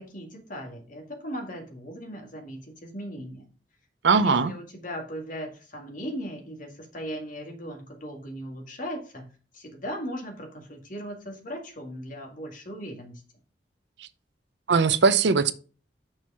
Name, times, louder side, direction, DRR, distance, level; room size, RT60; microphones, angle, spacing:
voice 1, 0.0-3.4 4.1-9.3 9.5-13.2, equal, 50° left, 2.0 m, -38 dB
voice 2, 4.0-4.5 14.7-15.5, right 5 dB, 85° right, 0.6 m, -20 dB
6.3 x 4.6 x 5.5 m
head